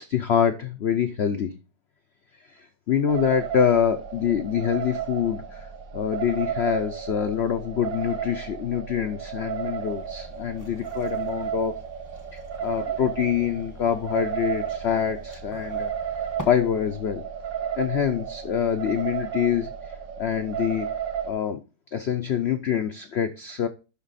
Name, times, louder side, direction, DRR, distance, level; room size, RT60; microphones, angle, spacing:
voice 1, 0.0-1.5 2.9-5.7 5.9-11.7 12.3-15.9 16.5-17.2 17.8-19.7 20.2-20.9 21.2-21.6 21.9-23.7, left 8 dB, 85° left, 8 dB, 0.5 m, -25 dB
sound 1, 3.1-21.3, right 8 dB, 85° right, 1.8 m, -33 dB
sound 2, 9.8-16.4, left 2 dB, 10° left, 1.1 m, -46 dB
11.5 x 3.9 x 4.1 m, 0.31 s
omnidirectional pair, 1.9 m